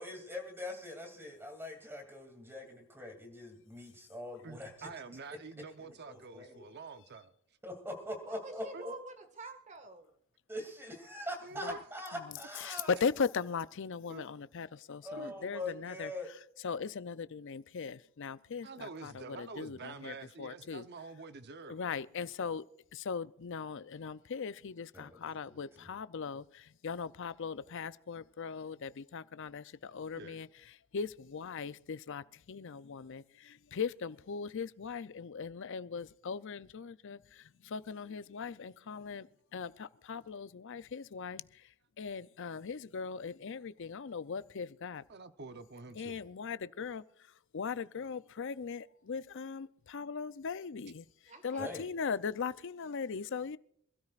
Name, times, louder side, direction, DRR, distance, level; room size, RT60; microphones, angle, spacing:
voice 1, 0.0-4.9 6.1-6.6 7.6-8.9 10.5-12.9 15.0-16.3 24.9-25.9 51.6-51.8, left 1 dB, 10° right, 2.7 m, -43 dB
voice 2, 4.4-7.3 8.7-8.8 11.4-11.8 12.7-12.8 14.1-14.2 15.2-15.3 18.6-21.8 30.2-30.5 45.1-46.2, right 4 dB, 45° right, 0.8 m, -47 dB
voice 3, 8.3-10.1 51.3-51.6, right 3 dB, 30° right, 1.8 m, -48 dB
voice 4, 12.6-16.1 16.6-20.9 21.7-22.6 22.9-30.5 30.9-39.3 39.5-41.6 42.0-45.0 46.0-47.0 47.5-51.0 51.4-53.6, left 5 dB, 55° left, 0.5 m, -39 dB
26.5 x 13.0 x 2.5 m
head